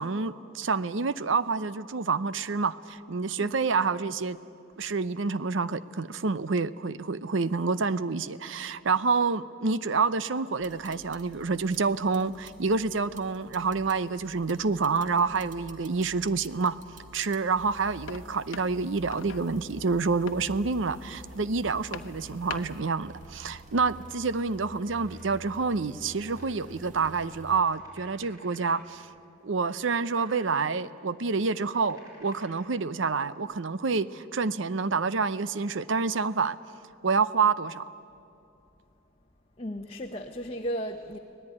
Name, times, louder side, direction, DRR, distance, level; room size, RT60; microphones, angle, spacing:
voice 1, 0.0-4.4 4.8-16.8 17.1-29.1 29.4-36.6 37.0-37.9, right 4 dB, 65° right, 15 dB, 0.7 m, -28 dB
sound 1, 10.6-27.6, right 2 dB, 40° right, 1.8 m, -50 dB
sound 2, 17.6-22.8, left 4 dB, 70° left, 1.0 m, -44 dB
sound 3, 25.0-25.5 26.2-26.5 26.9-28.8 29.3-29.6 29.9-30.7 31.3-32.7 33.2-33.4, equal, 20° right, 6.3 m, -57 dB
voice 2, 39.6-41.2, equal, 30° left, 2 dB, 1.0 m, -35 dB
25.0 x 18.0 x 9.8 m, 2.7 s
head